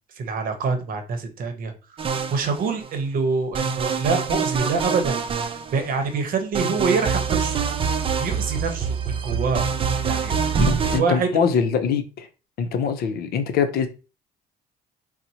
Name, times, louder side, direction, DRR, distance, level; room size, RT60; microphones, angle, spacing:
voice 1, 0.2-2.0 2.3-7.6 8.2-9.0 9.2-9.7 10.0-10.6 10.9-11.3, right 4 dB, 55° right, 0.8 m, -25 dB
sound 1, 2.0-2.9 3.5-6.1 6.5-11.0, right 6 dB, 30° right, 0.4 m, -25 dB
voice 2, 10.6-12.3 12.6-13.9, left 6 dB, 65° left, 0.6 m, -23 dB
4.2 x 2.1 x 2.8 m
cardioid pair, 110°, 17 cm